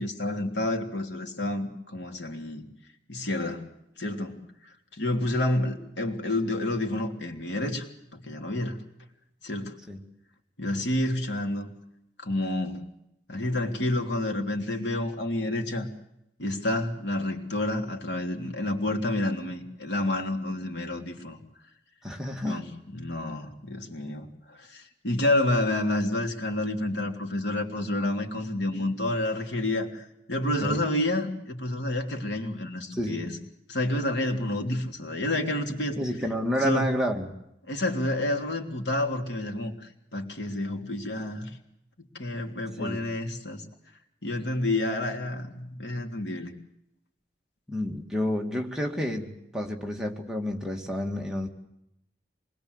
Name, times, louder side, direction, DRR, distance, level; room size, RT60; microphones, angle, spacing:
voice 1, 0.0-2.6 3.1-3.6 4.0-4.4 4.9-7.9 8.1-8.8 9.4-9.7 10.6-11.7 12.2-12.8 13.3-15.9 16.4-21.4 22.4-33.4 33.7-36.0 36.6-36.9 37.7-41.5 42.0-43.6 44.2-46.5, left 1 dB, 85° left, 3 dB, 3.4 m, -29 dB
voice 2, 22.0-22.6 30.6-30.8 32.9-33.2 36.0-37.3 42.8-43.0 47.7-51.5, equal, 5° right, 0 dB, 2.4 m, -30 dB
27.0 x 21.0 x 8.1 m, 0.82 s
head